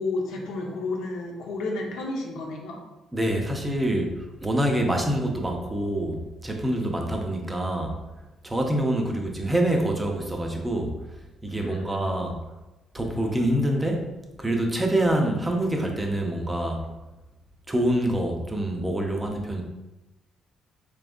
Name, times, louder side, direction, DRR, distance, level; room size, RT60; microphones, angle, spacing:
voice 1, 0.0-2.8 11.5-12.2, left 2 dB, 85° left, 1 dB, 0.8 m, -32 dB
voice 2, 3.1-8.0 8.4-11.0 11.4-12.4 12.9-14.1 14.4-16.9 17.7-19.6, right 1 dB, 10° right, 2 dB, 0.5 m, -26 dB
4.2 x 3.5 x 2.5 m, 1.0 s
cardioid pair, 150°, 0 cm